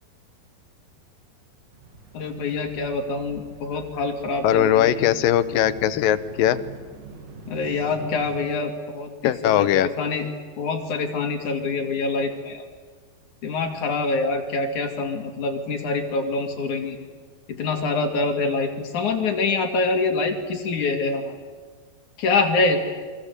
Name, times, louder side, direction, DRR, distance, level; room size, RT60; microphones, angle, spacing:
sound 1, 1.7-8.4, right 4 dB, 65° right, 5.0 m, -43 dB
voice 1, 2.1-5.1 7.5-10.3 10.6-12.6 13.4-17.0 17.5-21.4 22.2-22.8, left 3 dB, 55° left, 5 dB, 3.6 m, -25 dB
voice 2, 4.4-6.6 9.2-9.9, left 11 dB, 75° left, 14 dB, 2.5 m, -20 dB
29.0 x 23.5 x 8.3 m, 1.5 s
omnidirectional pair, 4.3 m